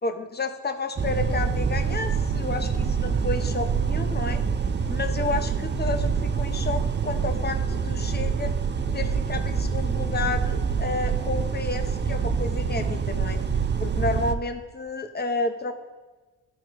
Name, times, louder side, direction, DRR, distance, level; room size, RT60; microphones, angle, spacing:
voice 1, 0.0-4.4 4.9-8.5 8.9-13.4 13.8-15.7, left 3 dB, 25° left, 6 dB, 1.0 m, -31 dB
sound 1, 1.0-14.3, right 6 dB, 30° right, 0.6 m, -26 dB
12.5 x 4.5 x 3.1 m, 1.2 s
cardioid pair, 60°, 36 cm